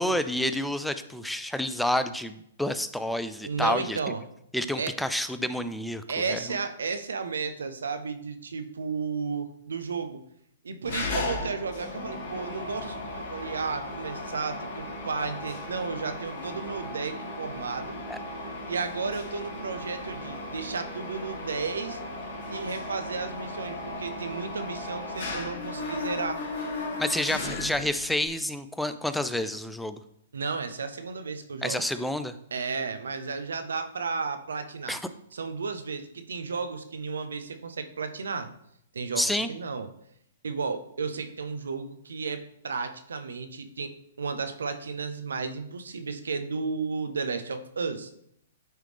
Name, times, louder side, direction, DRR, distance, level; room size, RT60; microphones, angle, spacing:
voice 1, 0.0-4.0 4.5-6.0 6.3-6.6 18.1-18.2 27.0-30.0 31.6-32.3 34.9-35.0 39.2-39.5, left 1 dB, ahead, 11 dB, 0.3 m, -29 dB
voice 2, 3.4-4.2 4.8-4.9 6.1-10.2 10.6-18.0 18.7-22.0 22.5-26.4 30.3-31.8 32.5-35.0 35.3-38.5 38.9-39.9 40.4-48.1, right 5 dB, 90° right, 9 dB, 0.7 m, -33 dB
Mechanisms, 10.8-28.3, left 2 dB, 55° left, 1.8 m, -36 dB
8.9 x 3.2 x 3.4 m, 0.72 s
hypercardioid pair, 140°, 0 cm